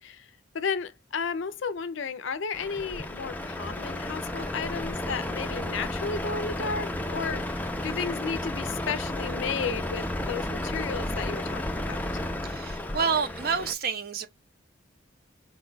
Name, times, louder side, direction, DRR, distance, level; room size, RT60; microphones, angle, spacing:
voice 1, 0.0-12.2, left 5 dB, 70° left, 0.5 m, -33 dB
Truck, 2.5-13.7, left 1 dB, 10° left, 0.4 m, -33 dB
voice 2, 12.4-14.3, right 5 dB, 45° right, 0.5 m, -28 dB
4.6 x 2.2 x 3.8 m
head